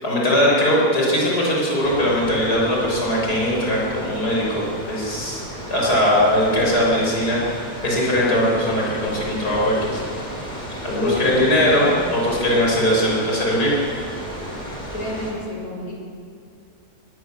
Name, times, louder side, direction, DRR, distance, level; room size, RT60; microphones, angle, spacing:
voice 1, 0.0-5.4 5.7-10.0 10.8-13.8, equal, 80° left, -4 dB, 6.7 m, -20 dB
sound 1, 1.8-15.3, equal, 30° left, 5.4 m, -34 dB
voice 2, 11.0-11.8 14.9-15.9, left 1 dB, 65° left, -2 dB, 5.4 m, -28 dB
23.0 x 18.5 x 7.5 m, 2.4 s
omnidirectional pair, 1.7 m